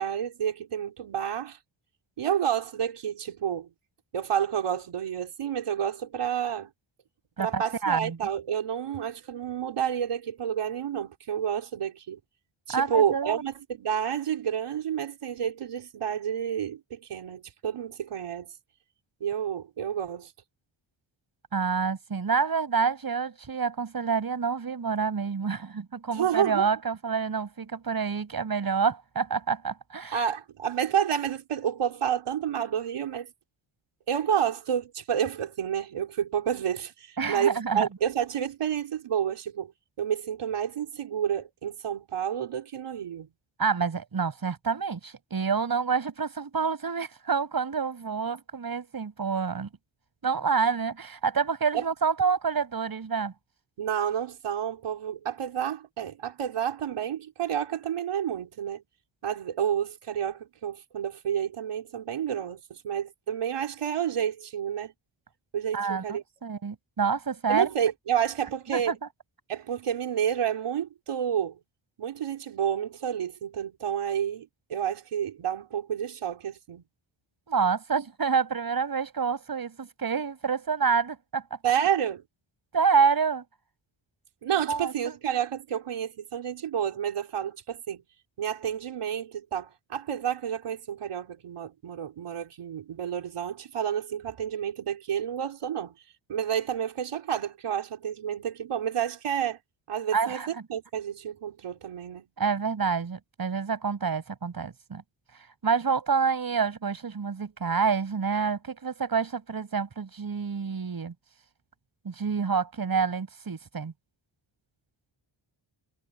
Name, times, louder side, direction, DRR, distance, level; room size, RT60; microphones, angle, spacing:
voice 1, 0.0-1.6 2.2-3.7 4.1-6.7 7.4-12.2 12.7-18.5 19.2-20.3 26.1-26.7 30.1-33.3 34.1-39.7 40.0-43.3 51.7-51.8 53.8-58.8 59.2-64.9 65.5-66.2 67.5-68.9 69.5-71.6 72.0-76.8 81.6-82.2 84.4-88.0 88.4-95.9 96.3-99.6 99.9-102.2, right 9 dB, 85° right, 4.5 m, -30 dB
voice 2, 7.4-8.2 12.7-13.4 21.5-30.2 37.2-37.9 43.6-49.7 50.2-53.3 65.7-67.7 68.7-69.1 77.5-81.4 82.7-83.4 84.7-85.1 100.1-100.5 102.4-105.0 105.6-111.1 112.0-113.9, right 5 dB, 45° right, 7.1 m, -28 dB
wide cardioid pair, 140°, 50 cm